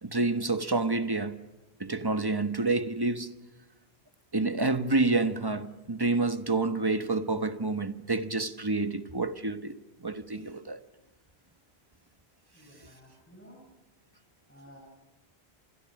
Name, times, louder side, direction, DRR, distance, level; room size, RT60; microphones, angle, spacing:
voice 1, 0.0-1.4 1.8-3.3 4.3-9.7 10.0-10.8, right 3 dB, 20° right, 1.2 m, -28 dB
voice 2, 12.5-13.6 14.5-14.8, equal, 10° left, 7.2 m, -53 dB
28.5 x 26.0 x 6.5 m
omnidirectional pair, 1.1 m